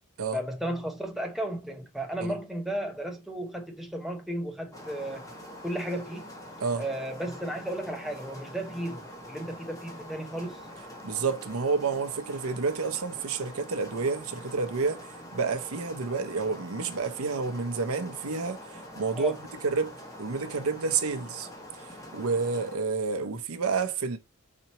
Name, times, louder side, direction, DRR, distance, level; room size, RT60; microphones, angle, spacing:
voice 1, 0.3-5.2 5.6-6.3 6.8-10.7 19.2-19.4, right 1 dB, ahead, 0.6 m, -34 dB
sound 1, 4.7-22.8, equal, 15° left, 1.0 m, -45 dB
voice 2, 11.0-19.3 19.6-19.9 20.2-21.5 21.8-24.2, right 4 dB, 75° right, 0.7 m, -29 dB
4.2 x 2.9 x 4.2 m
head